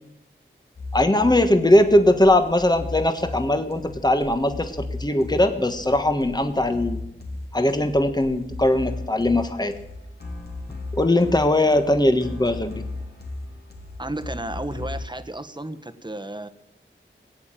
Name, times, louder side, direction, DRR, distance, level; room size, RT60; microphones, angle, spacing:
sound 1, 0.8-15.0, left 2 dB, 50° left, 3.2 m, -36 dB
voice 1, 0.9-7.0 7.5-9.8 10.9-12.8, left 1 dB, 20° left, 7 dB, 1.4 m, -20 dB
voice 2, 14.0-16.5, right 1 dB, 20° right, 11 dB, 1.3 m, -33 dB
18.0 x 8.5 x 9.0 m, 0.88 s
cardioid pair, 40°, 21 cm